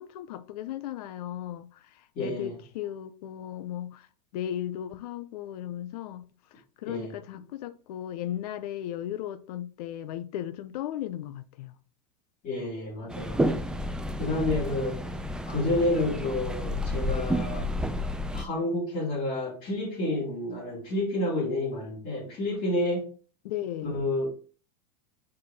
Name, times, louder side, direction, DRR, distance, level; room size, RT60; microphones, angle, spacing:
voice 1, 0.0-4.1 4.3-6.2 6.8-11.7 23.4-24.1, left 11 dB, 70° left, 0.7 m, -36 dB
voice 2, 2.1-2.5 6.8-7.1 12.4-13.4 14.2-15.0 15.4-17.7 18.3-23.0 23.8-24.3, left 2 dB, 40° left, 3.0 m, -29 dB
sound 1, 13.1-18.4, equal, 5° right, 0.5 m, -30 dB
4.9 x 4.6 x 4.2 m
supercardioid pair, 135°, 21 cm